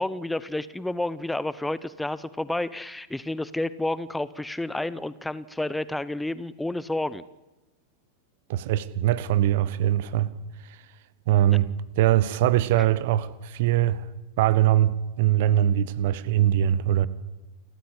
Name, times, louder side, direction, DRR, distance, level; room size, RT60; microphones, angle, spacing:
voice 1, 0.0-7.2 11.5-11.6, left 1 dB, 5° left, 0.8 m, -30 dB
voice 2, 8.5-10.3 10.7-10.8 11.3-11.7 12.0-14.0 14.4-14.9 15.2-17.1, right 12 dB, 50° right, 1.3 m, -22 dB
29.0 x 14.5 x 8.6 m
figure-of-eight pair, 90°, 0 cm